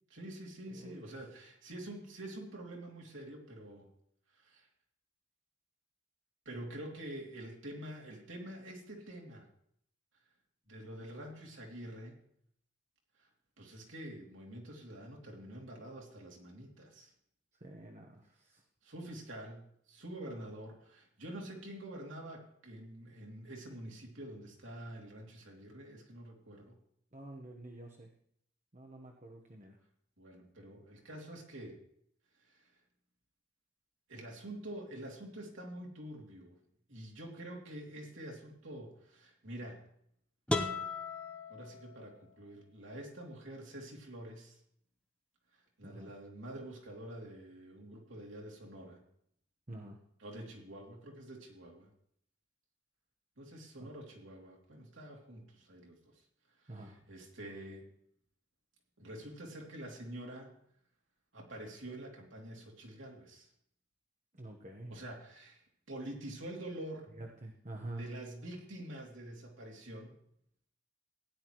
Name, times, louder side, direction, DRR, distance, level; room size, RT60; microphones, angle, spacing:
voice 1, 0.1-3.9 4.4-4.7 6.4-9.5 10.7-12.1 13.6-17.1 18.8-26.7 30.2-31.8 32.4-32.6 34.1-36.5 36.9-39.8 41.5-44.6 45.8-49.0 50.2-51.9 53.4-56.2 56.6-57.9 59.0-60.5 61.3-63.5 64.9-67.1 68.0-70.2, right 1 dB, 75° right, 0 dB, 2.9 m, -47 dB
voice 2, 0.7-1.0 17.6-18.6 27.1-28.1 28.7-29.8 45.8-46.1 49.7-50.0 53.8-53.9 56.7-57.0 64.4-65.0 67.1-68.0, right 2 dB, 35° right, 2 dB, 1.1 m, -47 dB
sound 1, 40.5-42.4, left 2 dB, 5° left, 0.8 m, -37 dB
16.0 x 10.5 x 3.1 m, 0.70 s
head